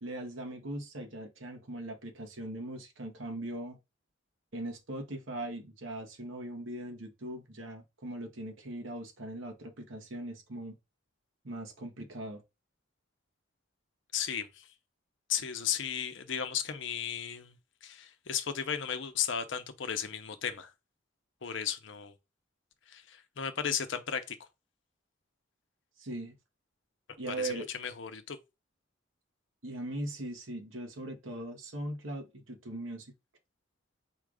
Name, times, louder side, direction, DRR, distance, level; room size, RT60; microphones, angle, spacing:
voice 1, 0.0-3.8 4.5-10.8 11.4-12.4 26.0-26.3 27.2-27.7 29.6-33.1, right 1 dB, 80° right, 1.2 m, -40 dB
voice 2, 14.1-14.7 15.3-17.6 17.8-20.7 21.4-22.1 22.9-24.4 27.3-28.4, left 8 dB, 70° left, 0.7 m, -35 dB
4.5 x 2.4 x 4.7 m
head